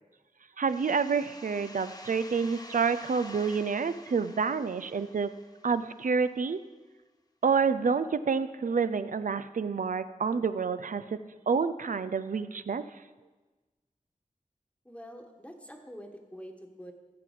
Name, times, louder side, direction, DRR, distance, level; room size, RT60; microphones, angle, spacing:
voice 1, 0.6-5.3 5.6-6.6 7.4-11.2 11.5-12.8, right 5 dB, 75° right, 13 dB, 0.5 m, -28 dB
sound 1, 0.7-6.2, left 2 dB, 30° left, 0.9 m, -49 dB
voice 2, 14.8-16.9, equal, 10° left, 3 dB, 1.2 m, -46 dB
13.5 x 7.7 x 4.9 m, 1.2 s
wide cardioid pair, 70°, 14 cm